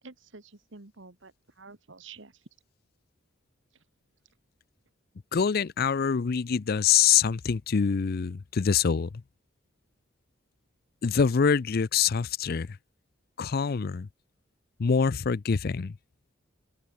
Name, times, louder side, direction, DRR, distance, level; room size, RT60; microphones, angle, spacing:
voice 1, 0.0-2.5 3.7-3.8, right 4 dB, 70° right, 1.8 m, -49 dB
voice 2, 5.3-9.1 11.0-12.8 13.4-14.1 14.8-16.0, left 6 dB, 50° left, 0.5 m, -25 dB
open air
head